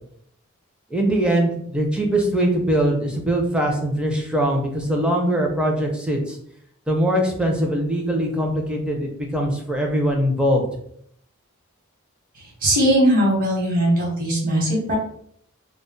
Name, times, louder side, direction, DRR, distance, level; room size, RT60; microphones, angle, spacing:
voice 1, 0.9-6.4 6.9-10.6, right 1 dB, 5° right, 0 dB, 0.4 m, -22 dB
voice 2, 12.4-15.0, equal, 40° right, -4 dB, 1.0 m, -20 dB
2.1 x 2.0 x 3.7 m, 0.67 s
head